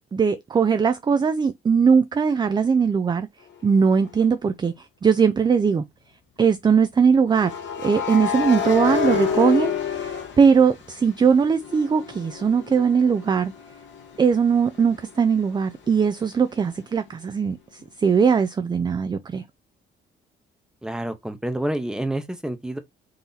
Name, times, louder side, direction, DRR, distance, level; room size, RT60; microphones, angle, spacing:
voice 1, 0.1-3.3 3.6-4.7 5.0-5.8 6.4-7.5 7.8-10.1 10.4-13.5 14.2-19.4, right 6 dB, 20° right, 0.3 m, -20 dB
sound 1, 4.0-4.2 7.3-11.2 11.6-15.1, left 7 dB, 70° left, 1.5 m, -28 dB
voice 2, 20.8-22.8, right 1 dB, 5° right, 0.8 m, -28 dB
4.0 x 2.8 x 3.8 m
cardioid pair, 90°, 20 cm